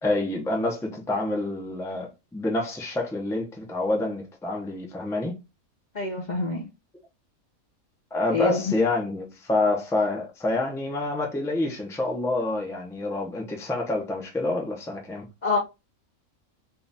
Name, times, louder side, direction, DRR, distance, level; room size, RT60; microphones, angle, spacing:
voice 1, 0.0-5.4 8.1-15.2, left 2 dB, 5° left, 0.5 m, -27 dB
voice 2, 5.9-6.7 8.3-8.6 15.4-15.6, left 3 dB, 50° left, 0.5 m, -26 dB
3.8 x 2.4 x 4.0 m
omnidirectional pair, 1.5 m